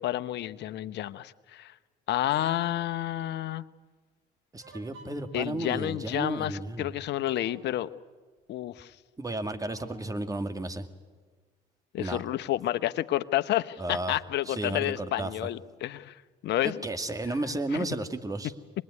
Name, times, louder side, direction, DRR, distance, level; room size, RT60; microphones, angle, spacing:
voice 1, 0.0-1.7 2.1-3.6 5.3-7.9 8.5-8.9 11.9-16.8 17.3-17.8, left 13 dB, 60° left, 13 dB, 1.0 m, -30 dB
sound 1, 2.1-3.1 4.6-5.4 6.7-6.8 7.3-7.7 9.7-10.0, right 2 dB, 70° right, 6.4 m, -53 dB
voice 2, 4.5-6.9 9.2-10.9 12.0-12.2 13.8-14.1 14.5-15.3 16.6-18.5, right 2 dB, 15° right, 8 dB, 2.3 m, -33 dB
25.0 x 20.5 x 9.7 m, 1.4 s
hypercardioid pair, 65°, 20 cm